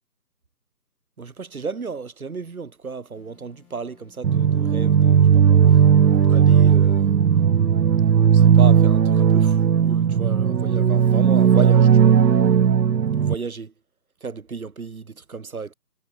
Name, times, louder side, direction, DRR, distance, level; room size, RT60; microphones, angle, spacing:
voice 1, 1.2-5.8 6.3-7.2 8.3-12.2 13.2-13.7 14.2-15.7, right 4 dB, 55° right, 2.0 m, -34 dB
sound 1, 3.1-8.9, left 13 dB, 5° left, 1.5 m, -58 dB
sound 2, 4.2-13.3, right 7 dB, 85° right, 0.8 m, -16 dB
figure-of-eight pair, 160°, 50 cm